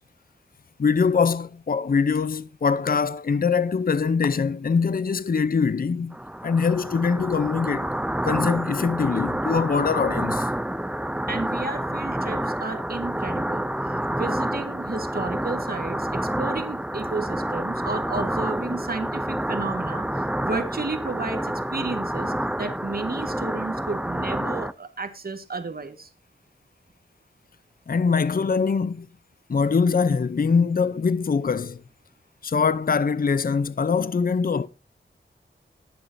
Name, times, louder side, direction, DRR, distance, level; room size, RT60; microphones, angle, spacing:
voice 1, 0.8-6.2 6.4-7.9 8.2-10.5 27.9-29.1 29.5-31.8 32.4-34.7, left 5 dB, 50° left, 0.6 m, -23 dB
sound 1, 6.1-24.7, right 1 dB, 5° right, 0.5 m, -28 dB
voice 2, 11.3-13.7 14.1-20.0 20.4-26.1, right 3 dB, 50° right, 1.5 m, -32 dB
20.0 x 6.9 x 2.6 m
wide cardioid pair, 70°, 20 cm